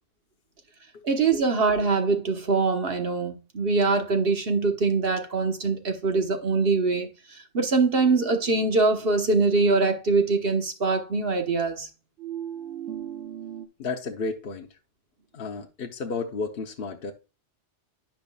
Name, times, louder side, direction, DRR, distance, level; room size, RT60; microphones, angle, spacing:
voice 1, 1.0-11.9, right 3 dB, 55° right, 1.4 m, -23 dB
sound 1, 7.9-9.2 12.2-13.7, right 10 dB, 80° right, 1.4 m, -38 dB
voice 2, 13.8-14.7 15.3-17.1, left 4 dB, 55° left, 1.0 m, -32 dB
10.5 x 5.2 x 2.3 m
omnidirectional pair, 1.2 m